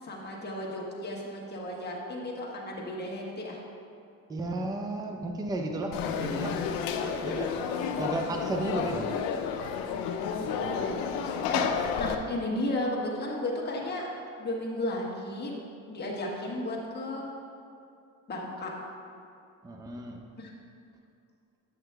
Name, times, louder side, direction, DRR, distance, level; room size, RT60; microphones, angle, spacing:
voice 1, 0.0-3.6 10.2-14.1 14.4-15.5 15.9-17.2 18.3-18.7 20.4-20.5, left 1 dB, 30° left, -3 dB, 1.2 m, -34 dB
voice 2, 4.3-6.6 7.2-9.1 19.6-20.2, right 2 dB, 10° right, 3 dB, 0.5 m, -33 dB
Conversation / Crowd, 5.9-12.2, left 7 dB, 80° left, 0.5 m, -31 dB
7.8 x 7.5 x 2.2 m, 2.5 s
cardioid pair, 110°, 34 cm